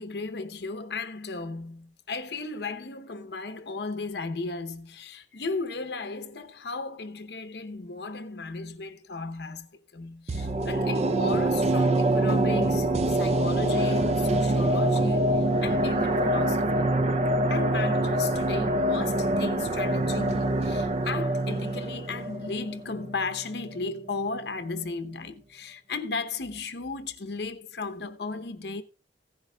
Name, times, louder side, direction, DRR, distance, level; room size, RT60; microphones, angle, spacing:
voice 1, 0.0-17.1 17.5-28.8, left 3 dB, 65° left, 0.8 m, -35 dB
sound 1, 10.3-23.4 23.7-23.8, right 1 dB, 40° right, 0.5 m, -25 dB
16.0 x 10.5 x 2.3 m
head